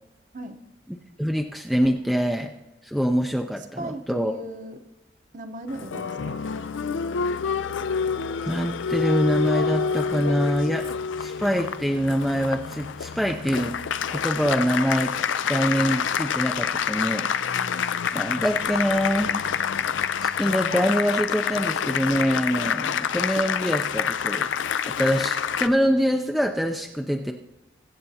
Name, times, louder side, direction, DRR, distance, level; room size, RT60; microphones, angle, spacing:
voice 1, 1.2-2.5 2.8-4.3 8.5-10.9 11.2-13.8 14.1-15.2 15.5-17.3 18.1-19.4 20.2-24.5 24.8-27.3, equal, ahead, 3 dB, 0.4 m, -24 dB
voice 2, 3.6-4.8 5.3-6.4, right 1 dB, 40° right, 7 dB, 0.9 m, -37 dB
Applause, 5.7-25.7, left 7 dB, 75° left, 0.5 m, -27 dB
22.5 x 7.7 x 2.8 m, 0.96 s
head